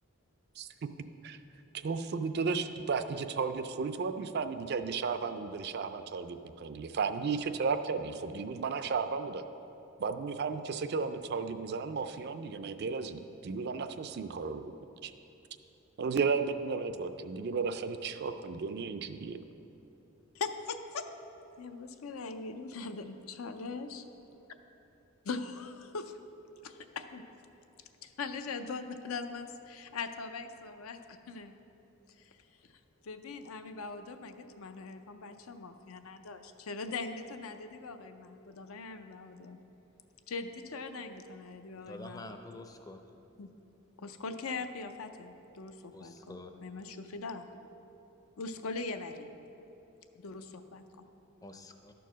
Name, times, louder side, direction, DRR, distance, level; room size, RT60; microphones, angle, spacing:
voice 1, 1.7-9.4 10.0-14.7 15.0-15.1 16.0-19.4, right 5 dB, 50° right, 10 dB, 0.4 m, -34 dB
voice 2, 20.3-21.1 21.6-24.0 25.2-26.1 26.6-27.2 28.0-31.6 32.2-32.4 33.0-39.6 40.3-42.2 43.4-43.5 44.0-47.7 48.4-49.3 50.2-50.4 50.7-50.8, left 4 dB, 75° left, 8 dB, 0.5 m, -41 dB
voice 3, 41.9-43.0 45.9-46.5 51.4-51.9, left 2 dB, 15° left, 6 dB, 0.5 m, -47 dB
11.5 x 4.6 x 6.1 m, 3.0 s
head